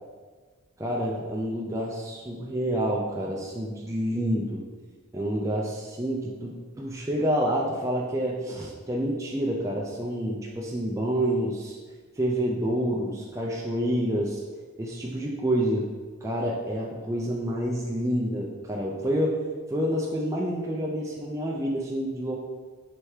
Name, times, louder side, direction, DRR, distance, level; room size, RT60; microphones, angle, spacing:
voice 1, 0.8-4.6 5.1-11.8 12.2-14.4 14.8-15.9 16.2-19.4 19.7-22.3, equal, 15° right, -3 dB, 0.3 m, -28 dB
3.3 x 3.2 x 4.4 m, 1.4 s
head